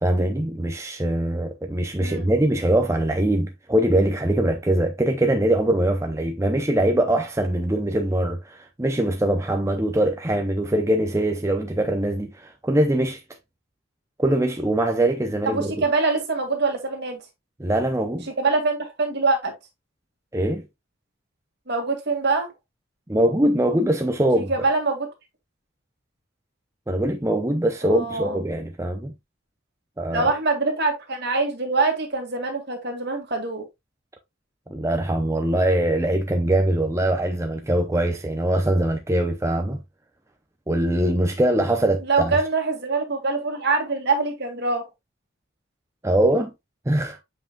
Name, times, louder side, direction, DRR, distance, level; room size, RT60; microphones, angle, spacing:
voice 1, 0.0-13.2 14.2-15.8 17.6-18.3 20.3-20.7 23.1-24.5 26.9-29.1 30.0-30.3 34.7-39.8 40.7-42.4 46.0-46.5 46.9-47.2, right 1 dB, 15° right, 0.6 m, -22 dB
voice 2, 15.5-17.2 18.4-19.5 21.7-22.5 24.3-25.1 27.8-28.4 30.1-33.7 42.0-44.8, right 3 dB, 55° right, 2.3 m, -24 dB
7.7 x 5.6 x 2.3 m
head